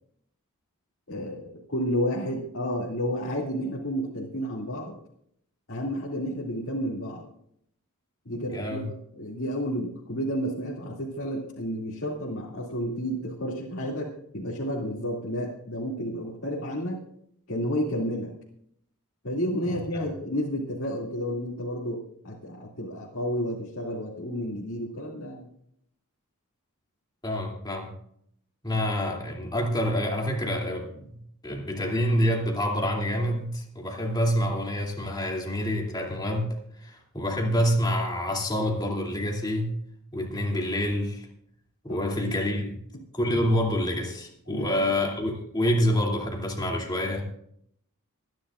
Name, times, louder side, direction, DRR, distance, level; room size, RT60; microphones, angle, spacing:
voice 1, 1.1-5.0 5.7-7.2 8.3-17.0 17.5-18.3 19.2-25.5 41.9-42.0 42.9-43.0 44.5-44.9, equal, 60° left, -5 dB, 2.5 m, -31 dB
voice 2, 8.5-8.9 19.6-20.0 27.2-27.9 28.6-31.2 31.4-39.8 40.1-41.3 41.8-42.8 43.1-47.2, equal, 20° left, -1 dB, 2.8 m, -27 dB
26.0 x 10.5 x 2.5 m, 0.70 s
head